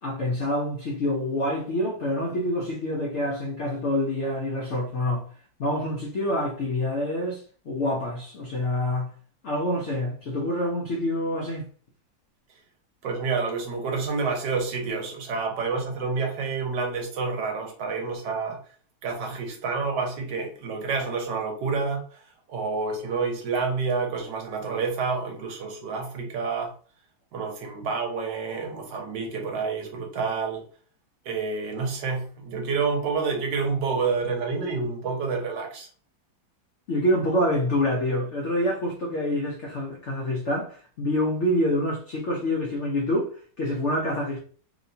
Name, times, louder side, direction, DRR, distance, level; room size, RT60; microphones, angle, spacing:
voice 1, 0.0-5.2 5.6-7.4 7.7-9.1 9.4-11.7 36.9-43.3 43.6-44.4, left 1 dB, 85° left, 0.6 m, -26 dB
voice 2, 13.0-18.6 19.0-22.0 22.5-26.7 27.3-30.6 31.3-35.9, right 4 dB, 70° right, 1.3 m, -28 dB
3.0 x 2.8 x 2.7 m
omnidirectional pair, 2.1 m